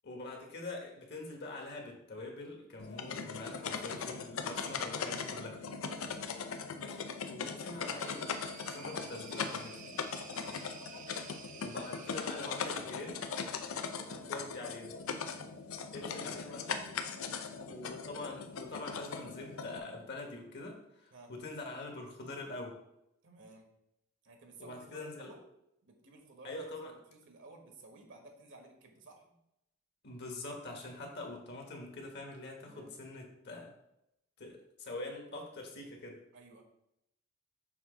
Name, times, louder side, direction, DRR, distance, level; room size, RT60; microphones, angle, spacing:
voice 1, 0.0-5.6 6.8-8.3 8.7-9.8 11.6-13.2 14.0-15.0 15.9-16.9 17.6-22.8 24.6-25.3 26.4-26.9 30.0-33.7 34.4-36.2, left 2 dB, 55° left, 2 dB, 1.3 m, -44 dB
sound 1, 2.8-19.8, left 5 dB, 75° left, 0.5 m, -40 dB
voice 2, 5.9-6.3 10.2-10.6 14.0-14.4 15.9-16.6 17.4-17.6 21.1-21.3 23.2-23.7 24.2-25.5 25.8-29.3 32.6-33.0 36.3-36.6, right 2 dB, 65° right, 3 dB, 1.2 m, -56 dB
sound 2, 7.5-13.7, right 6 dB, 40° right, 0.5 m, -53 dB
7.1 x 2.9 x 5.0 m, 0.82 s
head